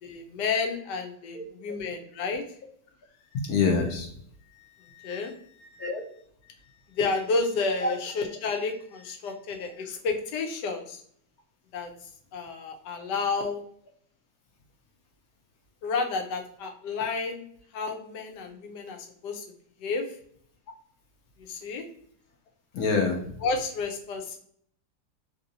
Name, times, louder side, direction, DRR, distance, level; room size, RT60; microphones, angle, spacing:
voice 1, 0.0-2.4 4.5-5.8 6.9-11.0 11.7-13.6 15.8-17.4 17.7-19.0 19.2-19.4 19.8-20.1 21.4-21.9 23.4-24.4, left 4 dB, 85° left, 4 dB, 1.3 m, -31 dB
voice 2, 1.3-1.8 3.3-4.1 5.8-6.0 7.8-7.9 22.7-23.2, left 4 dB, 65° left, 2 dB, 1.0 m, -26 dB
3.5 x 2.7 x 2.6 m, 0.64 s
omnidirectional pair, 1.8 m